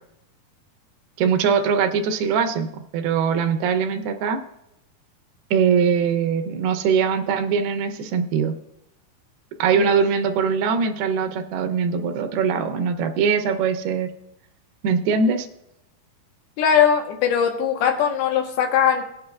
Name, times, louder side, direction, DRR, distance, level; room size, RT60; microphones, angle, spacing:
voice 1, 1.2-2.7 2.9-4.4 5.5-8.5 9.6-14.1 14.8-15.5, right 6 dB, 80° right, 6 dB, 2.7 m, -21 dB
voice 2, 16.6-19.0, left 8 dB, 80° left, 3 dB, 3.0 m, -20 dB
18.5 x 8.7 x 2.3 m, 0.84 s
omnidirectional pair, 4.5 m